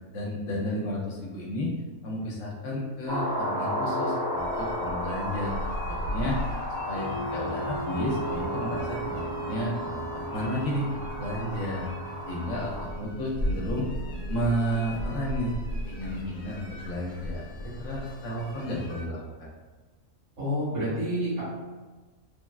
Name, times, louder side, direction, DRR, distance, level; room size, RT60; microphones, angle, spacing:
voice 1, 0.1-1.7 2.0-6.4 6.7-11.8 12.3-13.9 14.3-15.6 15.8-19.5, equal, 80° left, -3 dB, 1.0 m, -32 dB
sound 1, 3.1-12.9, left 1 dB, 75° right, 1.5 m, -34 dB
sound 2, 4.4-19.0, equal, 60° left, 1.0 m, -37 dB
sound 3, 7.0-18.2, right 2 dB, 40° right, 0.7 m, -41 dB
voice 2, 20.4-21.4, equal, 60° right, -12 dB, 1.6 m, -28 dB
3.2 x 2.3 x 2.2 m, 1.3 s
omnidirectional pair, 1.4 m